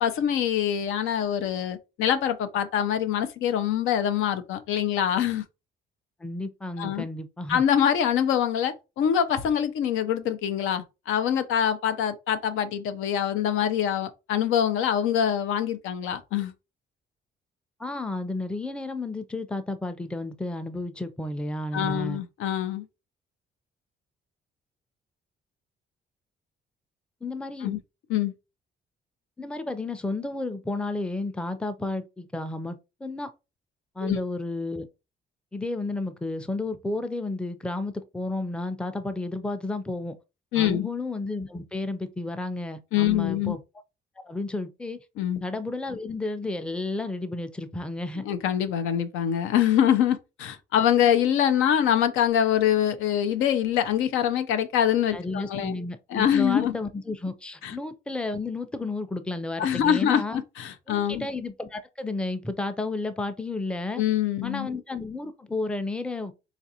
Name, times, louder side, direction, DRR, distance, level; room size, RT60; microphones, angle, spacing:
voice 1, 0.0-5.4 6.8-7.1 7.5-16.5 21.7-22.9 27.6-27.8 28.1-28.3 34.0-34.2 40.5-40.9 42.9-43.6 45.2-45.4 48.2-55.7 56.1-56.8 57.6-57.7 59.6-61.3 64.0-64.7, left 9 dB, 85° left, 0.5 m, -24 dB
voice 2, 6.2-7.6 17.8-22.2 27.2-27.8 29.4-33.3 34.0-34.9 35.5-40.1 40.6-43.6 44.2-45.0 45.4-48.3 55.1-60.4 60.9-64.0 64.4-66.3, left 2 dB, 5° left, 0.4 m, -32 dB
4.0 x 2.4 x 2.7 m
cardioid pair, 90°, 20 cm